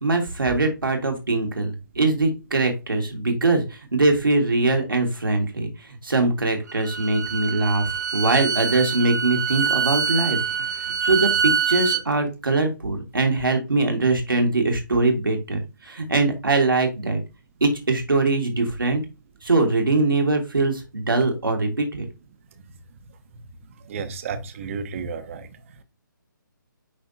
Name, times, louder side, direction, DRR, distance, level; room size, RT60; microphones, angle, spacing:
voice 1, 0.0-10.4 11.0-17.2 17.6-19.0 19.4-22.1, right 3 dB, 80° right, 1.9 m, -22 dB
Bowed string instrument, 6.7-12.0, right 7 dB, 60° right, 1.0 m, -25 dB
voice 2, 23.8-25.5, right 5 dB, 40° right, 1.0 m, -32 dB
10.5 x 3.5 x 2.7 m
figure-of-eight pair, 140°, 11 cm